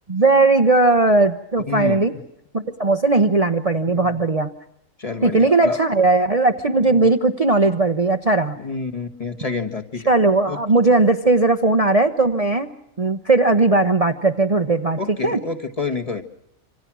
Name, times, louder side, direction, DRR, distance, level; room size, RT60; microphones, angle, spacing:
voice 1, 0.1-2.1 2.5-4.5 5.2-8.6 10.1-12.7 13.0-15.4, right 3 dB, 30° right, 6 dB, 1.0 m, -18 dB
voice 2, 1.7-2.0 3.8-4.1 5.0-5.8 6.9-7.0 8.6-10.1 10.5-10.6 15.0-16.2, left 4 dB, 25° left, 5 dB, 1.7 m, -28 dB
26.5 x 26.5 x 6.2 m, 0.76 s
omnidirectional pair, 1.4 m